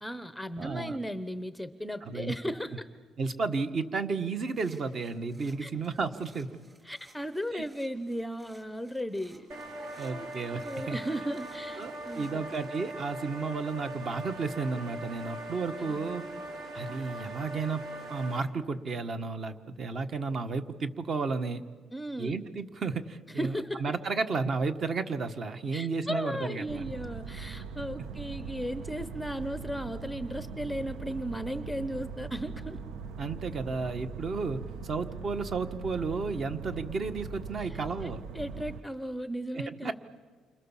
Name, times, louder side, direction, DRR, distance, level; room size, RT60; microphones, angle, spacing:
voice 1, 0.0-2.9 5.6-5.7 6.8-9.5 10.0-10.3 10.6-12.4 15.8-16.4 21.9-22.4 23.4-23.8 25.7-32.8 37.6-39.9, equal, ahead, 12 dB, 0.8 m, -36 dB
voice 2, 0.6-1.0 2.0-2.3 3.2-6.5 7.5-7.6 10.0-11.0 11.8-16.2 16.7-21.6 22.2-23.5 23.8-26.8 33.2-38.2 39.8-39.9, right 4 dB, 40° right, 9 dB, 1.5 m, -33 dB
sound 1, 4.4-12.7, right 2 dB, 20° right, 4.6 m, -61 dB
sound 2, 9.5-18.4, right 1 dB, 65° right, 3.9 m, -41 dB
sound 3, 26.7-38.8, right 5 dB, 90° right, 1.3 m, -41 dB
29.5 x 26.0 x 7.4 m, 1.5 s
cardioid pair, 140°, 0 cm